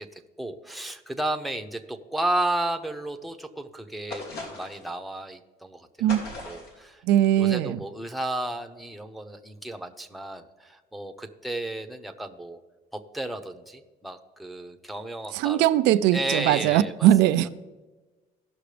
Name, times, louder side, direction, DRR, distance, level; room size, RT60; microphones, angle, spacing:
voice 1, 0.0-6.1 6.4-7.0 7.4-12.6 12.9-15.7 16.1-17.1, right 1 dB, ahead, 0.8 m, -33 dB
sound 1, 4.1-4.9 6.1-6.8, left 2 dB, 75° left, 2.5 m, -38 dB
voice 2, 7.1-7.8 15.3-17.5, right 12 dB, 90° right, 0.4 m, -20 dB
17.0 x 6.0 x 3.3 m
cardioid pair, 110°, 17 cm